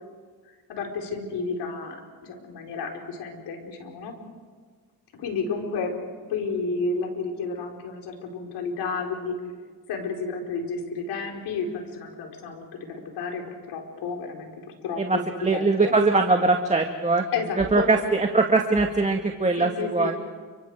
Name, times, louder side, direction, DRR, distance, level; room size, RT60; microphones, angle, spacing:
voice 1, 0.7-4.1 5.2-5.9 6.3-9.4 9.9-15.9 17.3-17.9 19.6-20.1, left 4 dB, 80° left, 2 dB, 4.5 m, -31 dB
voice 2, 15.0-17.3 17.6-20.2, right 3 dB, 15° right, 4 dB, 2.0 m, -22 dB
29.5 x 26.5 x 4.8 m, 1.5 s
supercardioid pair, 65°, 40 cm